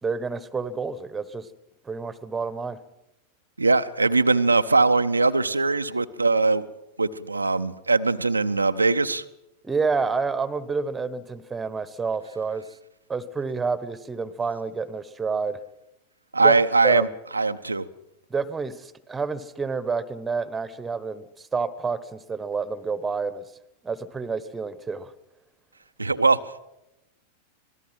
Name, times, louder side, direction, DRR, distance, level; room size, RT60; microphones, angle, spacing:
voice 1, 0.0-1.5 1.8-2.8 9.6-12.6 13.1-15.6 16.4-16.6 16.8-17.1 18.3-23.4 23.8-25.1, right 4 dB, 15° right, 17 dB, 1.3 m, -29 dB
voice 2, 3.6-6.7 7.0-9.2 16.3-17.1 17.3-17.8 26.0-26.6, right 3 dB, 80° right, 8 dB, 0.7 m, -21 dB
25.5 x 18.5 x 6.0 m, 0.91 s
figure-of-eight pair, 90°, 0 cm